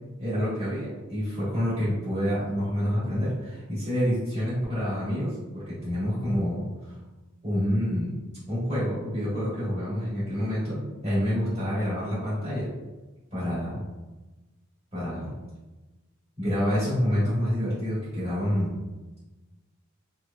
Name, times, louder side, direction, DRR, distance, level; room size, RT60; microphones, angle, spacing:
voice 1, 0.2-6.9 7.4-8.1 8.5-12.7 13.3-13.8 14.9-15.3 16.4-18.7, equal, 25° right, -12 dB, 1.3 m, -28 dB
3.2 x 2.1 x 2.3 m, 1.1 s
head